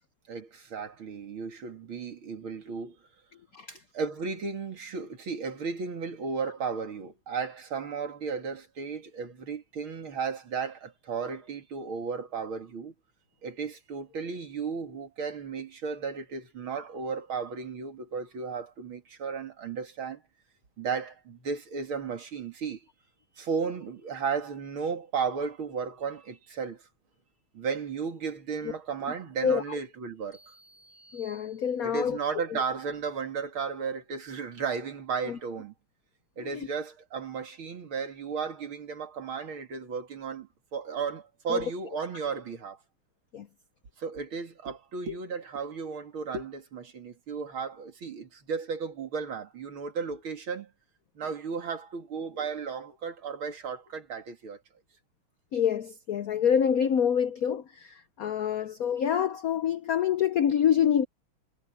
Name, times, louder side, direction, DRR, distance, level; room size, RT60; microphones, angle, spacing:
voice 1, 0.3-3.0 3.9-12.9 13.4-20.2 20.8-22.8 23.4-26.8 27.5-30.4 31.8-35.7 36.4-42.8 44.0-50.7 51.1-54.6, right 5 dB, 70° right, 3.2 m, -34 dB
sound 1, 30.3-32.2, right 1 dB, 20° left, 8.2 m, -57 dB
voice 2, 31.1-32.2 32.5-32.6 35.3-35.4 36.4-36.7 41.5-41.6 43.3-43.5 55.5-61.0, left 8 dB, 70° left, 0.8 m, -26 dB
omnidirectional pair, 2.4 m